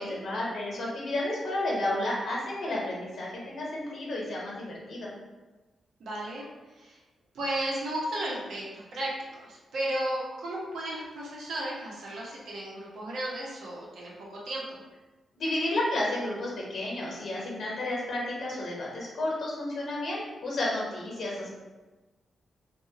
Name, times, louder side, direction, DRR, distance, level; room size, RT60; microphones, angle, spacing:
voice 1, 0.0-5.1 15.4-21.5, left 1 dB, 55° left, -4 dB, 0.8 m, -32 dB
voice 2, 6.0-6.5 6.7-7.0 7.3-14.8, right 1 dB, 75° right, -4 dB, 0.7 m, -34 dB
2.8 x 2.2 x 2.8 m, 1.2 s
wide cardioid pair, 165°, 0 cm